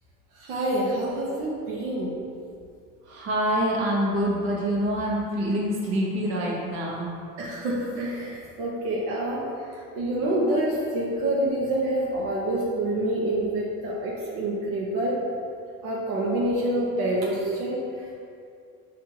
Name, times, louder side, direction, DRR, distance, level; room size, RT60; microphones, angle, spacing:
voice 1, 0.3-2.2 7.4-15.2 15.8-18.1, right 1 dB, 80° right, -4 dB, 0.8 m, -27 dB
voice 2, 3.1-7.1, equal, 55° right, -4 dB, 1.0 m, -26 dB
5.9 x 2.5 x 2.9 m, 2.4 s
cardioid pair, 140°, 31 cm